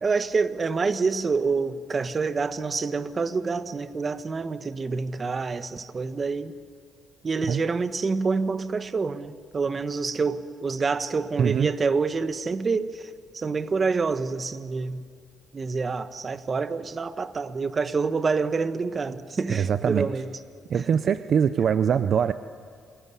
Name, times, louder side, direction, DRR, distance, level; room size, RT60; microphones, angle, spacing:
voice 1, 0.0-6.5 7.2-15.0 15.5-20.3, right 4 dB, 35° right, 1.3 m, -27 dB
voice 2, 11.4-11.7 19.5-20.1 20.7-22.3, right 7 dB, 60° right, 0.7 m, -23 dB
28.5 x 19.5 x 9.9 m
cardioid pair, 90°, 0 cm